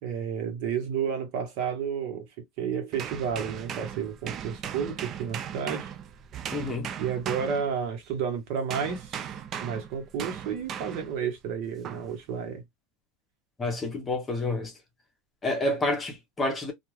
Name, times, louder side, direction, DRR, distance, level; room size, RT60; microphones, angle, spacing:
voice 1, 0.0-2.3 2.6-5.9 7.0-9.3 9.6-12.6, right 7 dB, 60° right, 1.0 m, -31 dB
sound 1, 2.9-8.2 8.7-11.2 11.8-12.1, right 9 dB, 35° right, 0.3 m, -38 dB
voice 2, 6.5-6.9 13.6-14.7 15.4-16.7, left 2 dB, 20° left, 0.8 m, -29 dB
2.3 x 2.3 x 3.2 m
supercardioid pair, 150°, 0 cm